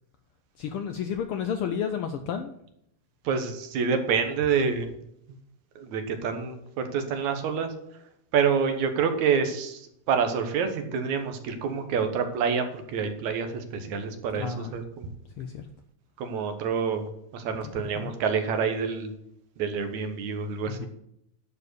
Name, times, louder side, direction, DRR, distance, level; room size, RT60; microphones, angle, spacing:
voice 1, 0.6-2.6 14.3-14.7 15.4-15.7 18.0-18.1 20.7-20.9, left 7 dB, 90° left, 7 dB, 1.2 m, -31 dB
voice 2, 3.2-4.9 5.8-7.7 8.3-15.1 16.2-19.1 19.6-20.9, right 6 dB, 75° right, 7 dB, 2.6 m, -27 dB
11.0 x 4.9 x 8.1 m, 0.76 s
omnidirectional pair, 3.4 m